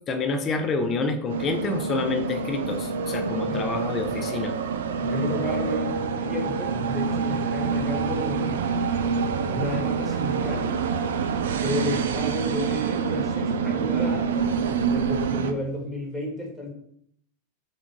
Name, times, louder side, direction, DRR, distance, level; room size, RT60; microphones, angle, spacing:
voice 1, 0.1-4.5, left 3 dB, 25° left, 7 dB, 0.6 m, -28 dB
sound 1, 1.3-15.5, right 5 dB, 60° right, 0.3 m, -26 dB
voice 2, 3.4-3.7 5.0-9.0 9.4-10.8 11.6-14.4 14.8-16.7, left 1 dB, 5° left, -3 dB, 1.3 m, -32 dB
3.4 x 2.7 x 3.7 m, 0.67 s
figure-of-eight pair, 90°, 0 cm